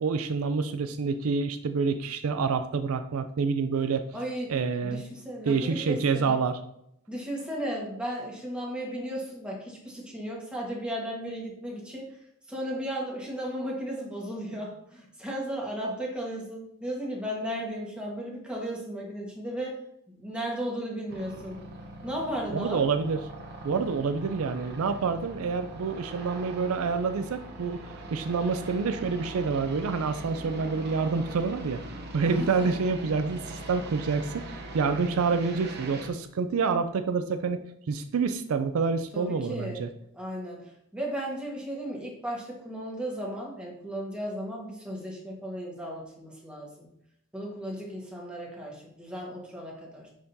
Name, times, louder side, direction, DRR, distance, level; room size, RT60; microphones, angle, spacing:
voice 1, 0.0-4.1 4.5-5.0 5.5-6.6 22.5-23.2 23.6-31.8 32.1-39.9, right 5 dB, 75° right, 10 dB, 0.4 m, -27 dB
voice 2, 4.1-4.5 4.8-6.3 7.1-12.2 12.5-19.8 20.1-21.6 22.0-22.8 32.2-32.7 39.1-39.8 40.1-46.9 47.3-50.1, equal, 5° right, -3 dB, 1.4 m, -35 dB
sound 1, 21.1-36.1, right 1 dB, 50° right, 0.8 m, -41 dB
10.0 x 3.7 x 2.7 m, 0.76 s
head